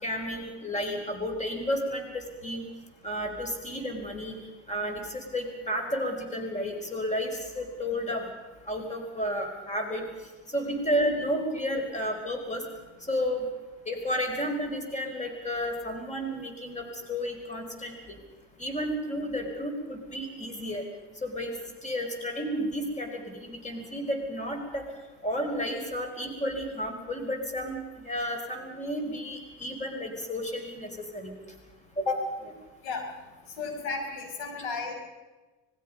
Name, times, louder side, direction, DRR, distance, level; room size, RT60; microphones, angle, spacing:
voice 1, 0.0-2.6 3.0-4.4 4.7-8.3 8.6-10.0 10.5-12.6 13.0-13.5 13.8-17.9 18.6-20.8 21.2-21.5 21.8-24.9 25.2-31.3 32.0-32.5, equal, 20° left, 4 dB, 4.9 m, -32 dB
voice 2, 33.6-34.9, left 4 dB, 80° left, 3 dB, 5.9 m, -34 dB
25.5 x 20.5 x 5.4 m, 1.2 s
supercardioid pair, 95°, 37 cm